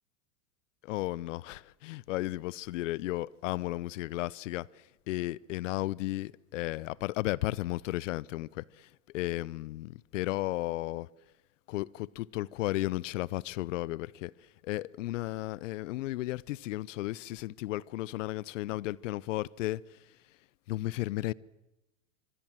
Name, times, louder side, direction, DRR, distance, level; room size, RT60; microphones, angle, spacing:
voice 1, 0.8-4.7 5.1-8.9 9.1-11.1 11.7-14.3 14.6-19.8 20.7-21.3, left 17 dB, 75° left, 0.9 m, -34 dB
27.0 x 25.5 x 7.6 m
supercardioid pair, 135°, 38 cm